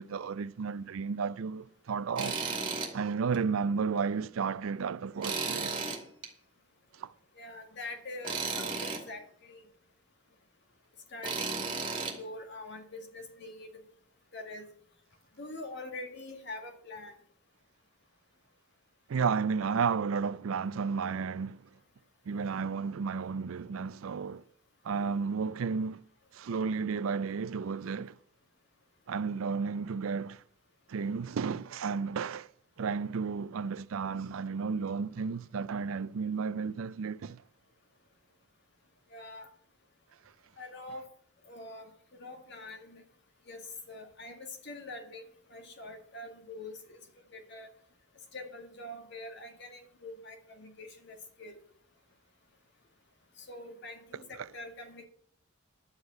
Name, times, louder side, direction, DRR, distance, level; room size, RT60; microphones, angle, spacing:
voice 1, 0.0-2.4 2.9-5.9 7.0-7.1 19.1-21.6 22.3-24.4 24.8-26.0 26.3-28.2 29.1-30.4 30.9-32.5 32.8-37.4 54.4-54.5, right 5 dB, 75° right, 0.4 m, -32 dB
Tools, 2.2-2.9 3.3-3.4 5.2-6.3 8.2-9.0 11.2-12.1, right 4 dB, 25° right, 2.4 m, -34 dB
voice 2, 7.4-9.6 11.1-11.8 12.1-13.8 14.3-14.7 15.4-17.2 39.1-39.5 40.6-41.0 41.5-43.0 43.5-47.7 48.3-51.6 53.4-55.0, left 2 dB, 55° left, 2.0 m, -44 dB
11.5 x 6.4 x 8.1 m
head